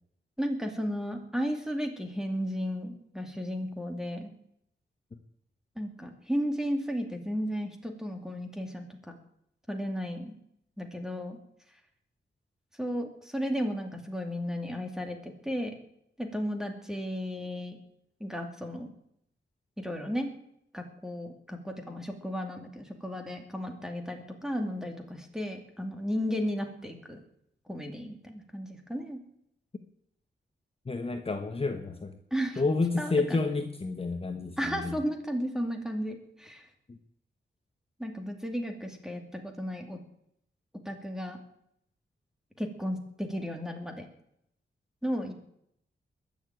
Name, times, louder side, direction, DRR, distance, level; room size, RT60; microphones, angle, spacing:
voice 1, 0.4-4.3 5.8-8.9 9.7-10.3 10.8-11.4 12.8-15.7 16.2-17.8 18.2-18.9 19.8-20.3 20.7-27.2 27.7-29.2 32.3-32.6 33.0-33.4 34.6-36.6 38.0-40.0 40.9-41.4 42.6-44.1 45.0-45.3, equal, 5° right, 4 dB, 2.5 m, -34 dB
voice 2, 30.9-32.1 32.6-35.0, left 3 dB, 30° left, 5 dB, 1.2 m, -30 dB
21.0 x 7.2 x 9.2 m, 0.76 s
wide cardioid pair, 120°, 19 cm